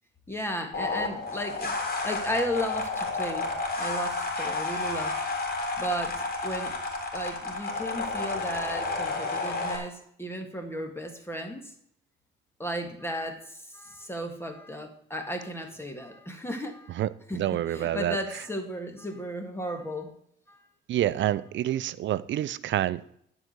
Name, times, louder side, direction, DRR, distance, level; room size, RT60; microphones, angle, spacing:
voice 1, 0.3-3.5 3.8-5.2 5.8-6.8 7.1-11.7 12.6-17.0 17.3-20.1 20.5-20.7, equal, 10° left, 1.8 m, -35 dB
sound 1, 0.7-9.8, left 3 dB, 50° left, 3.5 m, -31 dB
voice 2, 16.9-18.2 20.9-23.2, right 12 dB, 70° right, 0.6 m, -28 dB
12.0 x 4.9 x 8.0 m
cardioid pair, 90°, 20 cm